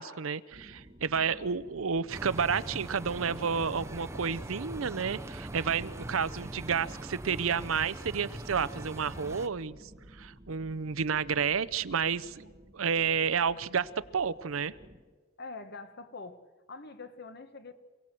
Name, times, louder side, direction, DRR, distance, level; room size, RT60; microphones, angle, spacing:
voice 1, 0.0-9.8 10.2-12.5 12.7-14.7, right 6 dB, 80° right, 0.7 m, -30 dB
sound 1, 0.5-15.0, right 1 dB, 35° right, 1.5 m, -53 dB
sound 2, 2.1-9.5, right 1 dB, 15° right, 0.6 m, -42 dB
voice 2, 15.4-17.7, left 3 dB, 55° left, 1.3 m, -44 dB
27.5 x 18.0 x 7.6 m
head